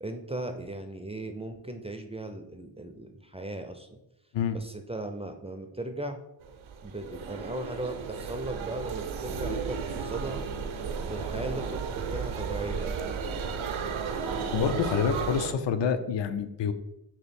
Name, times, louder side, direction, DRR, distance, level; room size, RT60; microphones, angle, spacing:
voice 1, 0.0-4.0 4.5-6.2 6.8-10.5 11.0-13.0 13.3-13.6, right 1 dB, 15° right, 6 dB, 0.3 m, -37 dB
sound 1, 6.4-15.5, right 6 dB, 80° right, 0.6 m, -34 dB
voice 2, 14.5-16.7, left 7 dB, 65° left, 11 dB, 0.5 m, -27 dB
3.1 x 3.0 x 4.2 m, 0.88 s
cardioid pair, 50°, 47 cm